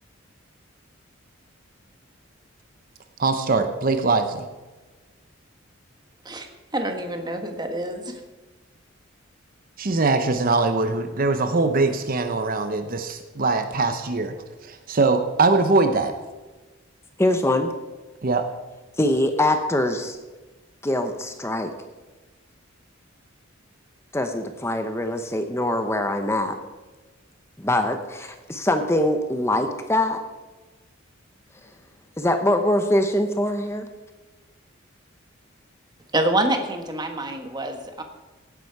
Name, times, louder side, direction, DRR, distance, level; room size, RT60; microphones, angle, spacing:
voice 1, 3.2-4.5 9.8-14.4 14.7-16.1 18.2-18.5, right 3 dB, 45° right, 8 dB, 0.8 m, -22 dB
voice 2, 6.7-8.2 36.1-38.0, right 1 dB, 20° right, 5 dB, 1.4 m, -26 dB
voice 3, 17.2-17.7 19.0-20.2 20.8-21.7 24.1-26.6 27.6-30.2 32.2-33.9, left 1 dB, 15° left, 7 dB, 0.8 m, -23 dB
16.5 x 9.8 x 4.7 m, 1.2 s
head